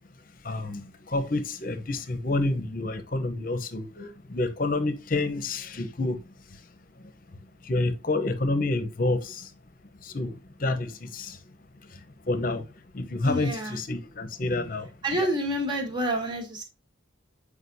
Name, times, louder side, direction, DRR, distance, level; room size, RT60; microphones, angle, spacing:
voice 1, 0.4-6.2 7.6-9.5 10.0-11.4 11.9-12.0 12.3-12.7 12.9-15.3, left 2 dB, 45° left, 0.9 m, -29 dB
voice 2, 13.2-13.8 15.0-16.6, right 1 dB, 25° right, 1.6 m, -28 dB
8.1 x 5.0 x 2.7 m
head